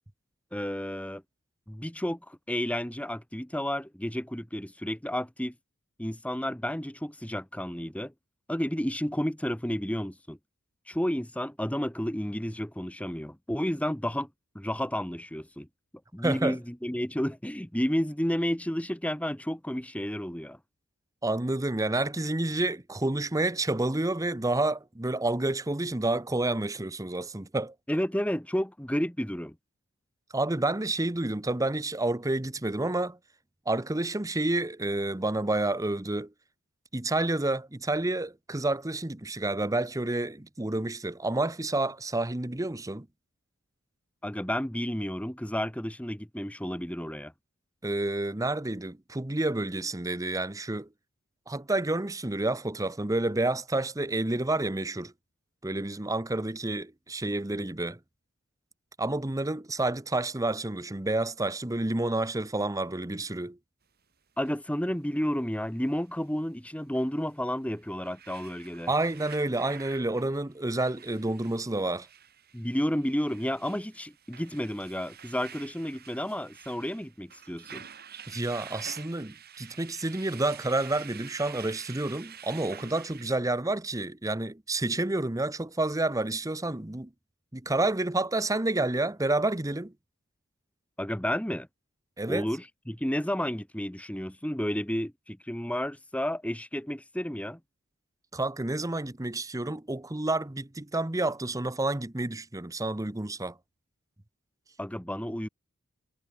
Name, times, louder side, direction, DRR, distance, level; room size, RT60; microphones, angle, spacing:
voice 1, 0.5-1.2 1.7-5.5 6.0-8.1 8.5-10.4 10.9-14.3 14.6-15.7 16.1-20.6 27.9-29.6 44.2-47.3 64.4-68.9 72.5-77.8 91.0-91.7 92.3-97.6 104.8-105.5, equal, 5° left, 1.8 m, -31 dB
voice 2, 16.2-16.6 21.2-27.7 30.3-33.2 33.7-36.3 36.9-43.1 47.8-50.9 51.5-55.1 55.6-58.0 59.0-63.6 68.9-72.1 78.3-87.1 87.5-89.9 92.2-92.5 98.3-103.6, right 2 dB, 15° right, 0.9 m, -29 dB
sound 1, 64.4-64.6 66.9-67.1 67.7-83.4, right 8 dB, 45° right, 7.9 m, -48 dB
head